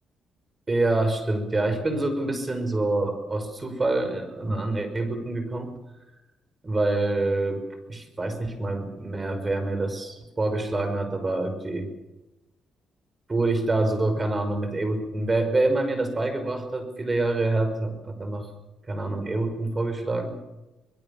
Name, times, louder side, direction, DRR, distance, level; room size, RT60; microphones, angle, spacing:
voice 1, 0.7-5.7 6.6-11.9 13.3-18.5 18.9-20.4, right 2 dB, 25° right, 9 dB, 5.6 m, -26 dB
24.5 x 21.0 x 7.2 m, 1.0 s
cardioid pair, 90°, 0 cm